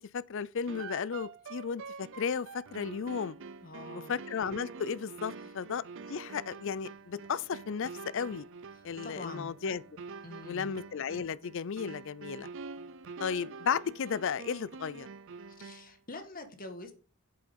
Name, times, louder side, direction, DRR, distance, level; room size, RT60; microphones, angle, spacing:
voice 1, 0.0-3.4 4.1-5.8 6.1-8.5 8.8-9.8 10.5-12.5 13.2-15.1, left 6 dB, 60° left, 0.5 m, -34 dB
sound 1, 0.7-16.0, right 4 dB, 60° right, 0.6 m, -46 dB
voice 2, 3.6-4.1 9.0-9.5 10.2-10.7 15.5-16.9, left 2 dB, 40° left, 1.8 m, -45 dB
8.1 x 7.7 x 5.3 m
head